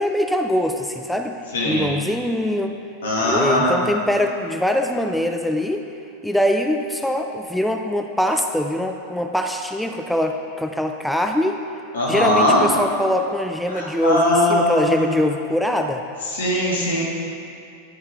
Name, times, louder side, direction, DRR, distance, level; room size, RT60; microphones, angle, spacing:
voice 1, 0.0-1.4 1.7-2.7 3.2-5.8 6.2-11.6 12.1-16.0, equal, ahead, 4 dB, 0.5 m, -23 dB
voice 2, 1.5-1.9 3.0-3.8 11.9-12.6 13.7-15.1 16.3-17.0, left 1 dB, 75° left, -5 dB, 2.2 m, -20 dB
11.0 x 5.8 x 3.8 m, 2.6 s
hypercardioid pair, 95°, 0 cm